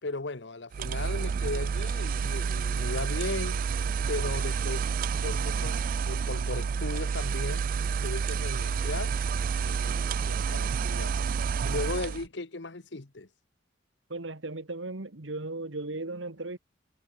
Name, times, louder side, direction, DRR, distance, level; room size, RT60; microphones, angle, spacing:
voice 1, 0.0-3.6 4.1-4.9 5.2-7.7 8.0-9.1 9.6-11.2 11.6-13.3, left 2 dB, 65° left, 1.3 m, -36 dB
sound 1, 0.7-12.3, right 6 dB, 50° right, 0.3 m, -29 dB
voice 2, 14.1-16.6, right 2 dB, 85° right, 1.8 m, -36 dB
head